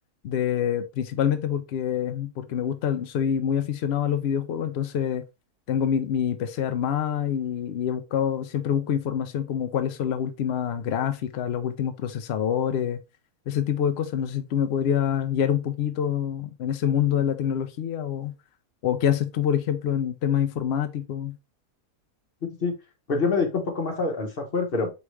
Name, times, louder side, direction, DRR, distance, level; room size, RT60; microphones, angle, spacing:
voice 1, 0.2-5.2 5.7-13.0 13.5-18.3 18.8-21.4, left 9 dB, 85° left, 0.5 m, -26 dB
voice 2, 22.4-22.7 23.1-24.9, left 4 dB, 40° left, 1.2 m, -26 dB
4.6 x 3.1 x 3.2 m
omnidirectional pair, 1.7 m